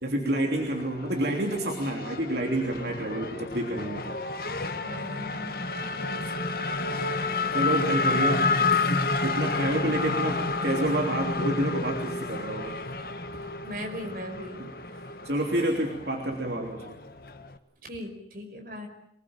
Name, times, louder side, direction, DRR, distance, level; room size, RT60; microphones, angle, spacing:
voice 1, 0.0-4.1 6.0-6.2 7.5-12.8 14.6-17.0, right 1 dB, 70° right, 1 dB, 3.3 m, -29 dB
Race car auto racing / Accelerating revving vroom, 0.6-17.6, left 3 dB, 55° left, 1.6 m, -30 dB
voice 2, 4.8-5.6 6.2-6.3 13.6-14.6 17.8-18.9, equal, 55° right, 3 dB, 5.2 m, -38 dB
26.5 x 20.0 x 9.0 m, 0.76 s
head